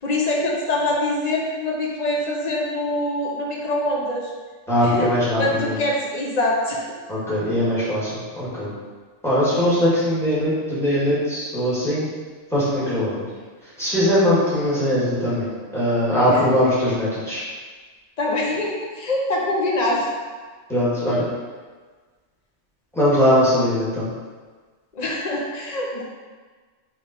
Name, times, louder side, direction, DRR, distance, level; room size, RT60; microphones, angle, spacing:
voice 1, 0.0-4.3 4.8-5.1 5.4-6.8 16.3-16.4 18.2-20.1 24.9-26.0, left 1 dB, 50° left, -2 dB, 0.5 m, -24 dB
voice 2, 4.7-5.8 7.1-8.7 9.2-12.1 12.5-13.3 13.8-15.5 15.7-17.4 20.7-21.2 22.9-24.1, equal, ahead, -10 dB, 1.4 m, -20 dB
3.4 x 3.0 x 3.9 m, 1.5 s
omnidirectional pair, 1.3 m